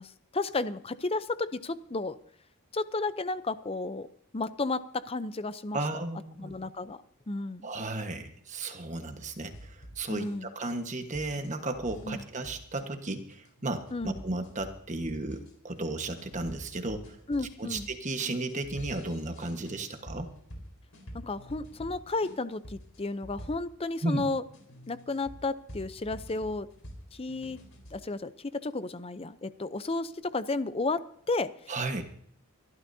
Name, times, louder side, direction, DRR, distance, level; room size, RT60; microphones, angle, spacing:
voice 1, 0.0-2.2 2.7-4.1 4.3-5.8 6.4-7.7 10.1-10.5 12.0-12.2 13.9-14.2 17.3-17.9 21.1-24.4 24.9-26.7 27.1-27.6 27.9-31.5, left 3 dB, 25° left, 14 dB, 0.6 m, -33 dB
voice 2, 5.7-6.5 7.6-17.2 17.6-20.3 24.0-24.2 31.7-32.0, right 2 dB, 35° right, 6 dB, 1.4 m, -34 dB
sound 1, 9.5-24.0 24.5-28.0, equal, 75° left, 4.2 m, -48 dB
24.5 x 13.0 x 2.8 m, 0.65 s
head